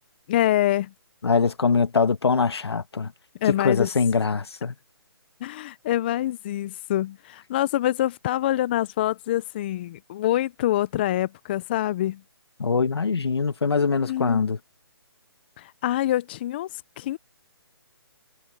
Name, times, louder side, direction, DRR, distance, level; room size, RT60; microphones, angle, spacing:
voice 1, 0.3-0.9 3.4-3.9 5.4-12.2 14.0-14.5 15.6-17.2, left 13 dB, 25° left, 0.5 m, -25 dB
voice 2, 1.2-3.1 3.6-4.7 12.6-14.6, left 5 dB, 80° left, 1.7 m, -23 dB
hypercardioid pair, 155°, 13 cm